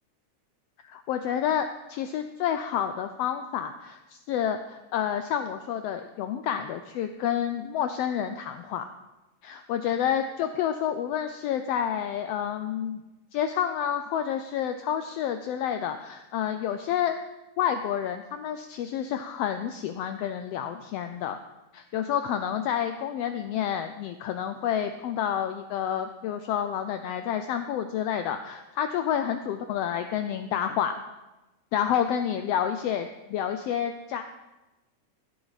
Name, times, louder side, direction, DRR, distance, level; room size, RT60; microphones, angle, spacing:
voice 1, 0.8-8.8 9.4-13.0 13.3-17.2 17.6-21.4 21.7-30.9 31.7-34.2, left 9 dB, 85° left, 8 dB, 1.4 m, -29 dB
15.5 x 8.4 x 4.0 m, 1.0 s
omnidirectional pair, 3.4 m